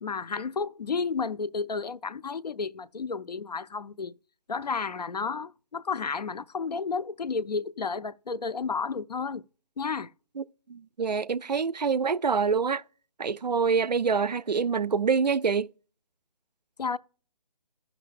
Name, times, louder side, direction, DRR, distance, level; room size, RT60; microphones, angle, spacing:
voice 1, 0.0-4.1 4.5-9.4 9.8-10.1 16.8-17.0, left 5 dB, 75° left, 0.4 m, -32 dB
voice 2, 10.4-12.8 13.2-15.7, right 5 dB, 85° right, 0.4 m, -26 dB
16.0 x 5.9 x 2.3 m
figure-of-eight pair, 145°, 21 cm